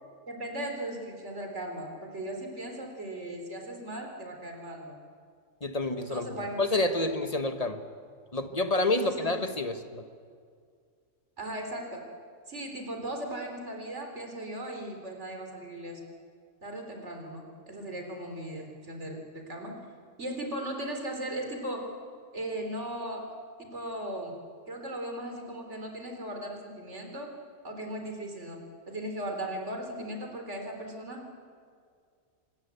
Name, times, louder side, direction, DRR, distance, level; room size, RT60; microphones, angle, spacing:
voice 1, 0.3-5.0 6.1-6.6 6.9-7.0 9.0-9.3 11.4-12.0 12.5-16.0 16.6-19.8 20.2-21.9 22.3-23.3 23.6-24.3 24.7-27.3 27.6-28.6 28.9-31.2, right 1 dB, 65° right, 3 dB, 4.0 m, -37 dB
voice 2, 5.6-7.8 8.3-10.0, left 2 dB, 30° left, 8 dB, 1.4 m, -29 dB
25.5 x 20.5 x 8.2 m, 2.1 s
omnidirectional pair, 1.3 m